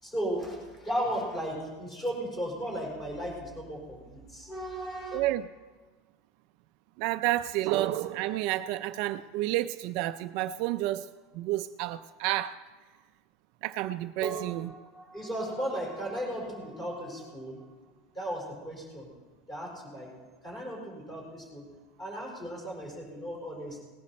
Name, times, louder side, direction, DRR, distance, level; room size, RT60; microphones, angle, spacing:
voice 1, 0.0-5.2 14.2-17.6 18.1-19.1 19.5-20.1 20.4-21.6 22.0-23.8, equal, 20° left, -2 dB, 4.4 m, -36 dB
voice 2, 5.1-5.5 7.0-11.1 11.3-12.6 13.6-14.7, right 15 dB, 50° right, 10 dB, 0.4 m, -30 dB
18.5 x 11.0 x 4.2 m, 1.3 s
supercardioid pair, 170°, 0 cm